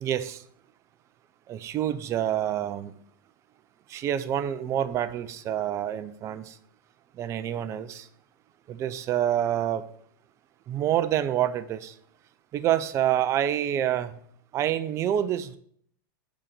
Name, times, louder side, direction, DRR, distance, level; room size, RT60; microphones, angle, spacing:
voice 1, 0.0-0.4 1.5-2.9 3.9-6.5 7.2-8.1 8.7-9.8 10.7-11.9 12.5-14.2 14.5-15.6, right 11 dB, 25° right, 12 dB, 0.5 m, -27 dB
7.4 x 4.1 x 6.7 m, 0.63 s
supercardioid pair, 145°, 12 cm